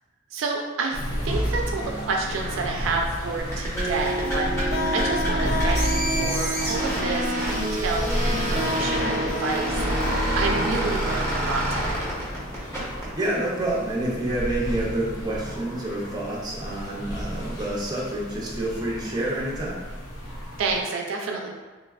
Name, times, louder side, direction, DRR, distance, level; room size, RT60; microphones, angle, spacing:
voice 1, 0.3-12.1 20.6-21.5, right 3 dB, 85° right, 1 dB, 0.4 m, -29 dB
sound 1, 0.9-20.8, equal, 80° left, 0.7 m, -32 dB
sound 2, 3.4-13.1, equal, 15° left, 0.8 m, -28 dB
sound 3, 3.7-11.3, equal, 45° left, 0.7 m, -29 dB
voice 2, 13.2-19.8, right 1 dB, 20° right, -4 dB, 0.5 m, -28 dB
3.2 x 2.2 x 2.3 m, 1.3 s
head